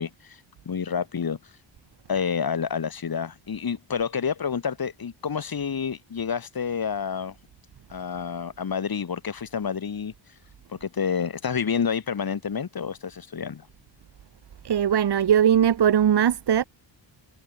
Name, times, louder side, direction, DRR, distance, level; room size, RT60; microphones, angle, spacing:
voice 1, 0.0-1.4 2.1-7.4 7.9-10.1 10.7-13.7, left 6 dB, 50° left, 3.9 m, -29 dB
voice 2, 14.6-16.6, right 9 dB, 55° right, 1.4 m, -20 dB
wide cardioid pair, 110°, 47 cm